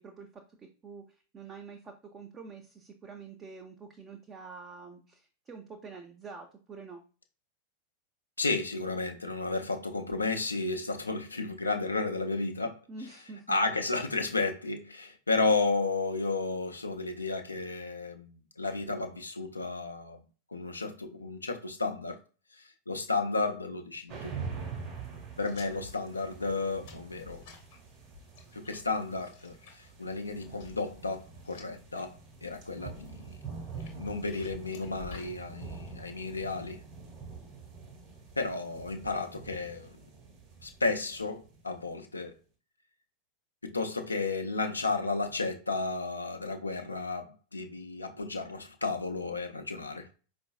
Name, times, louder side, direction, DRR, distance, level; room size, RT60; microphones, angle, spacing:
voice 1, 0.0-7.0 12.9-13.6 25.5-25.9, right 4 dB, 25° right, 0.6 m, -47 dB
voice 2, 8.4-12.8 13.5-20.2 20.5-22.2 22.5-24.4 25.4-27.4 28.5-32.1 32.4-33.4 33.9-36.8 38.4-40.0 40.6-42.3 43.6-50.1, left 3 dB, 80° left, 0.5 m, -33 dB
sound 1, 24.1-41.9, right 5 dB, 40° right, 1.2 m, -45 dB
sound 2, 25.4-32.1 32.4-32.9 33.5-35.3, left 5 dB, 50° left, 0.9 m, -52 dB
4.5 x 2.5 x 2.3 m
figure-of-eight pair, 90°, 0 cm